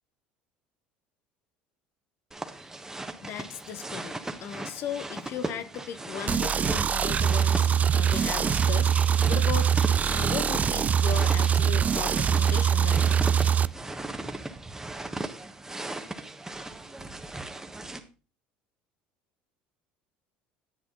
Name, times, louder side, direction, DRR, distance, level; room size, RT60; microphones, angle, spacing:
sound 1, 2.3-18.0, right 2 dB, 10° right, 1.3 m, -37 dB
voice 1, 3.2-9.7 10.1-13.3, left 9 dB, 55° left, 0.9 m, -37 dB
sound 2, 6.3-13.7, right 8 dB, 30° right, 0.3 m, -23 dB
10.0 x 8.1 x 3.8 m
hypercardioid pair, 75°, 5 cm